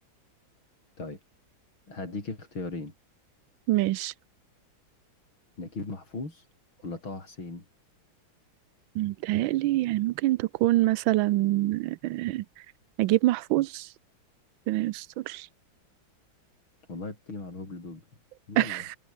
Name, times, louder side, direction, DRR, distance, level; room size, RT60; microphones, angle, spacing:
voice 1, 1.9-2.9 5.6-6.5 6.8-7.6 16.9-18.0 18.5-18.9, left 3 dB, 85° left, 7.0 m, -37 dB
voice 2, 3.7-4.1 9.0-12.4 13.0-13.9 14.7-15.5 18.6-18.8, right 16 dB, 80° right, 1.4 m, -25 dB
omnidirectional pair, 2.2 m